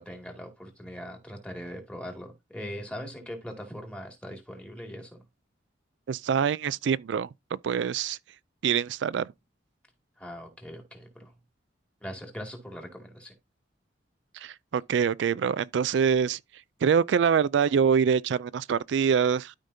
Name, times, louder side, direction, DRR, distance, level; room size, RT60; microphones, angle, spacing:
voice 1, 0.0-5.2 10.2-11.3 12.0-13.3, equal, 5° left, 2.2 m, -41 dB
voice 2, 6.1-7.3 7.6-8.2 8.6-9.3 14.3-16.4 16.8-19.5, right 7 dB, 75° right, 0.3 m, -25 dB
12.5 x 5.1 x 2.7 m
head